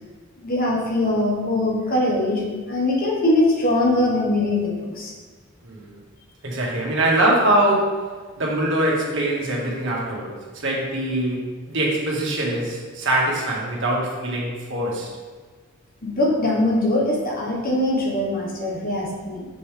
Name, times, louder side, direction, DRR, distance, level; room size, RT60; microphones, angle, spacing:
voice 1, 0.4-5.1 16.0-19.5, left 1 dB, 45° left, -2 dB, 1.3 m, -22 dB
voice 2, 6.4-8.1 8.4-15.1, right 1 dB, 60° right, -3 dB, 1.7 m, -23 dB
6.9 x 5.5 x 3.4 m, 1.4 s
head